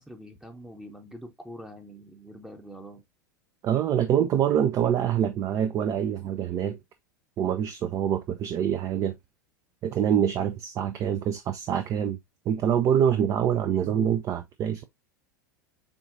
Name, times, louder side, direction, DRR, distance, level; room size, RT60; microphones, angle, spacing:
voice 1, 0.0-3.0, equal, 5° right, 0.8 m, -44 dB
voice 2, 3.6-6.8 7.4-9.1 9.8-12.2 12.5-14.8, right 9 dB, 30° right, 0.4 m, -25 dB
7.0 x 2.4 x 2.6 m
figure-of-eight pair, 85°, 10 cm